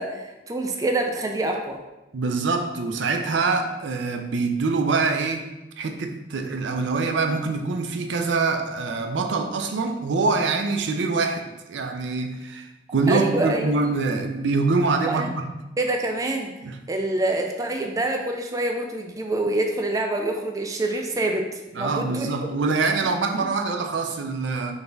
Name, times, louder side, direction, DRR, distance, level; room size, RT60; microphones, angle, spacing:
voice 1, 0.0-1.8 13.1-13.7 15.1-15.3 15.8-16.5 16.9-22.3 23.3-23.5, right 2 dB, 20° right, 3 dB, 0.4 m, -26 dB
voice 2, 2.1-5.4 5.8-15.4 16.6-16.8 21.7-24.7, right 3 dB, 80° right, 5 dB, 0.5 m, -24 dB
4.0 x 3.9 x 3.4 m, 1.0 s
head